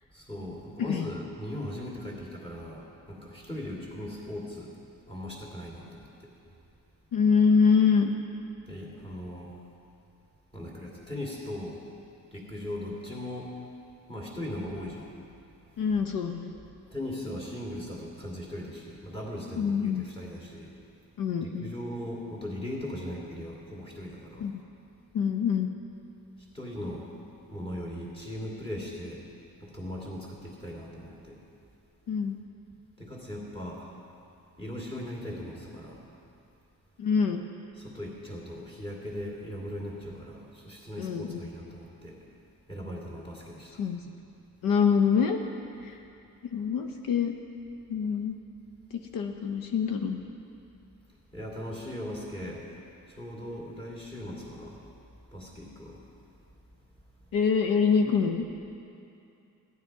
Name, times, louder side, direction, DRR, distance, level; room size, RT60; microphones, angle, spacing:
voice 1, 0.1-4.7 5.1-6.3 8.7-9.5 10.5-11.8 12.3-13.5 14.1-15.1 16.9-20.7 21.4-24.5 26.5-27.0 27.5-29.2 29.6-31.4 33.0-33.9 34.6-36.0 37.8-42.2 42.7-43.8 51.3-52.6 53.1-54.8 55.3-56.0, left 1 dB, 15° left, -3 dB, 2.4 m, -39 dB
voice 2, 0.8-1.1 7.1-8.1 15.8-16.5 19.6-20.0 21.2-21.7 24.4-24.5 25.1-25.7 32.1-32.4 37.0-37.4 41.0-41.5 43.8-44.0 44.6-45.4 45.8-46.0 46.5-47.4 47.9-48.3 48.9-50.2 57.3-58.4, left 6 dB, 75° left, 4 dB, 0.8 m, -25 dB
14.0 x 10.5 x 4.7 m, 2.7 s
cardioid pair, 140°, 34 cm